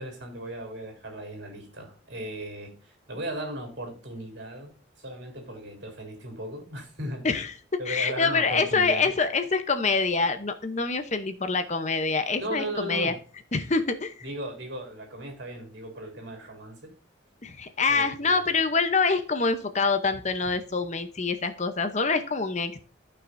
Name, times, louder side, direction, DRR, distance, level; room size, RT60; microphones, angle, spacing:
voice 1, 0.0-4.7 5.0-7.3 7.8-9.1 12.4-13.2 14.2-16.9 17.9-18.5, right 1 dB, 60° right, 3.8 m, -37 dB
voice 2, 7.9-13.1 13.5-14.3 17.4-22.8, left 4 dB, 35° left, 0.7 m, -26 dB
14.5 x 5.9 x 2.6 m
head